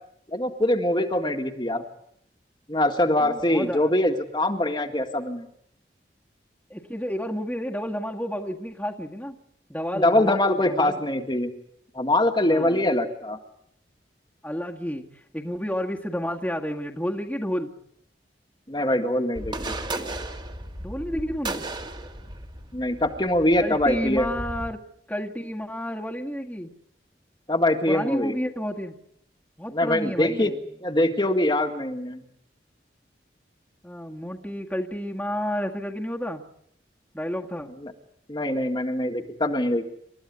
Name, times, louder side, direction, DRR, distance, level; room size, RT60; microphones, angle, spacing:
voice 1, 0.3-1.8 2.7-5.5 9.9-11.5 12.0-13.4 18.7-19.7 22.7-24.3 27.5-28.3 29.7-30.5 30.8-32.2 37.8-37.9 38.3-39.8, left 1 dB, 25° left, 5 dB, 1.8 m, -23 dB
voice 2, 3.2-4.0 6.7-9.4 9.7-11.0 12.5-12.8 14.4-17.7 20.8-21.7 23.6-24.8 25.1-26.7 27.9-29.0 29.6-30.6 33.8-36.4 37.1-37.7, equal, 5° left, 1 dB, 1.8 m, -30 dB
sound 1, 19.4-24.7, right 2 dB, 25° right, 2.2 m, -35 dB
29.0 x 14.5 x 9.5 m, 0.74 s
head